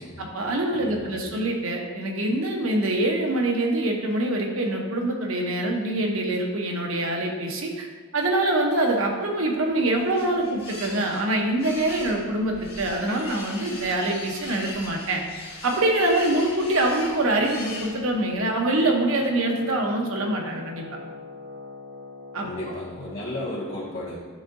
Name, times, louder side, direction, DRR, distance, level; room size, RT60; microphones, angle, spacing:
voice 1, 0.2-7.9 8.1-15.2 15.6-20.9 22.3-22.7, right 1 dB, 80° right, 1 dB, 0.9 m, -24 dB
voice 2, 0.7-1.2 22.4-24.2, left 1 dB, 75° left, -11 dB, 1.8 m, -34 dB
sound 1, 9.5-18.4, left 2 dB, 45° left, 1.5 m, -40 dB
Wind instrument woodwind instrument, 17.3-23.0, left 3 dB, 50° right, 0.3 m, -42 dB
10.5 x 3.5 x 2.7 m, 1.4 s
head